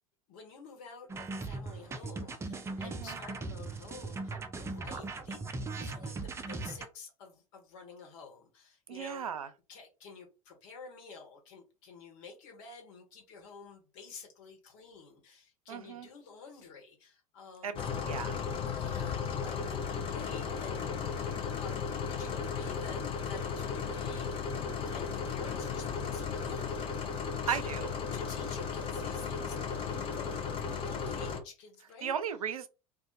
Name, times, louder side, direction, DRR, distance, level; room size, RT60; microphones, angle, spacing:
voice 1, 0.3-9.3 9.7-17.8 18.6-21.3 21.6-24.5 24.8-32.2, left 5 dB, 50° left, 1.3 m, -50 dB
sound 1, 1.1-6.9, right 3 dB, 15° right, 0.5 m, -39 dB
voice 2, 2.8-3.2 8.9-9.5 15.7-16.1 17.6-17.8 18.0-18.4 27.5-27.9 32.0-32.7, right 8 dB, 70° right, 0.4 m, -35 dB
sound 2, 17.8-31.4, left 6 dB, 30° left, 0.6 m, -35 dB
2.5 x 2.4 x 3.9 m
figure-of-eight pair, 75°, 19 cm